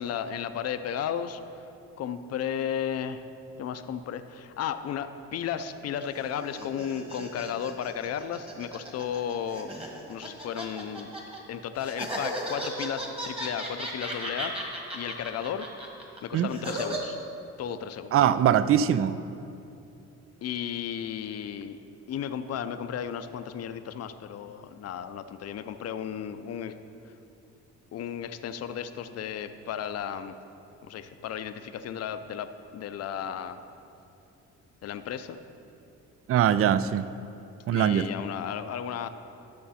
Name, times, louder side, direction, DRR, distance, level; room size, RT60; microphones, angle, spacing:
voice 1, 0.0-1.4 2.0-3.2 3.6-9.8 10.1-11.1 11.5-14.5 14.9-15.7 16.2-17.2 17.6-18.1 20.4-21.8 22.1-26.8 27.9-30.4 30.8-33.6 34.8-35.4 37.7-39.1, left 8 dB, 55° left, 10 dB, 0.5 m, -34 dB
sound 1, 6.0-11.4 11.8-17.0, right 1 dB, 20° right, 1.7 m, -36 dB
voice 2, 18.1-19.2 36.3-37.1 37.7-38.1, right 10 dB, 50° right, 15 dB, 0.4 m, -22 dB
11.5 x 6.6 x 4.2 m, 2.7 s
cardioid pair, 90°, 30 cm